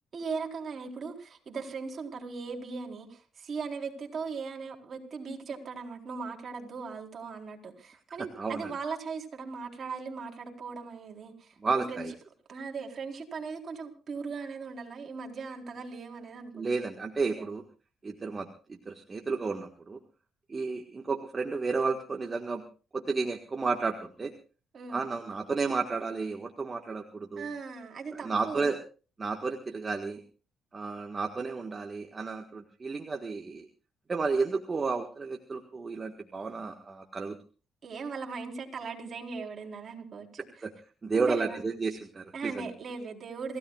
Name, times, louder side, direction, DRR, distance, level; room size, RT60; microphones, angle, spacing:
voice 1, 0.1-12.0 12.5-16.7 17.4-17.5 24.7-25.1 27.4-28.7 37.8-40.3 41.1-41.6 42.3-43.6, right 5 dB, 50° right, 2 dB, 4.1 m, -38 dB
voice 2, 8.2-8.7 11.6-12.1 16.5-17.6 18.0-20.0 20.5-22.6 22.9-24.3 24.9-27.5 28.1-28.8 29.2-30.2 30.7-33.7 34.1-37.4 40.4-40.7 41.0-42.7, right 4 dB, 30° right, 3 dB, 1.6 m, -32 dB
27.5 x 16.0 x 2.4 m, 0.36 s
cardioid pair, 90°, 0 cm